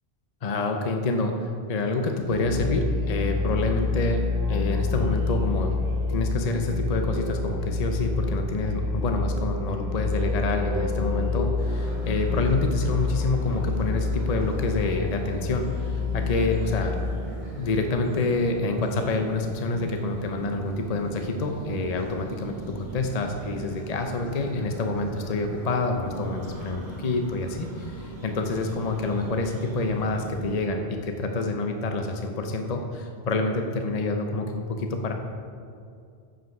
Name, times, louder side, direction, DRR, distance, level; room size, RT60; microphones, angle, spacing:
voice 1, 0.4-4.2 4.5-5.7 6.1-17.0 17.6-35.1, left 2 dB, 45° left, 4 dB, 0.7 m, -27 dB
Musical instrument, 2.2-17.2, left 4 dB, 20° right, 2.0 m, -28 dB
sound 1, 11.6-30.7, right 2 dB, 50° right, 1.6 m, -40 dB
14.0 x 5.2 x 5.3 m, 2.4 s
omnidirectional pair, 1.0 m